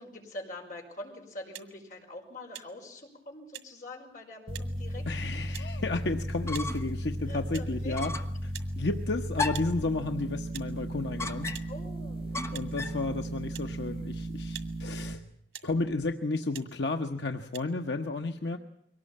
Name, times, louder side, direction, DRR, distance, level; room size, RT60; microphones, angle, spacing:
voice 1, 0.0-5.1 7.3-8.0 11.7-12.6 18.2-18.5, left 1 dB, 45° left, 1 dB, 5.5 m, -44 dB
sound 1, 1.5-1.7 2.5-2.7 3.5-3.7 4.5-4.7 5.5-5.7 6.5-6.7 7.5-7.7 8.5-8.7 9.5-9.7 10.5-10.7 11.5-11.7 12.5-12.7 13.5-13.7 14.5-14.7 15.5-15.7 16.5-16.7 17.5-17.6, right 12 dB, 90° right, 1.9 m, -44 dB
sound 2, 4.5-15.1, right 1 dB, 35° right, 1.5 m, -36 dB
voice 2, 5.1-8.2 8.4-11.5 12.5-15.2 15.6-18.6, left 2 dB, 80° left, 4 dB, 1.1 m, -32 dB
sound 3, 6.3-7.0 7.3-7.4 7.9-8.4 9.4-9.8 11.2-11.8 12.3-13.0, left 3 dB, 15° left, 1.0 m, -35 dB
23.0 x 19.0 x 8.6 m, 0.72 s
head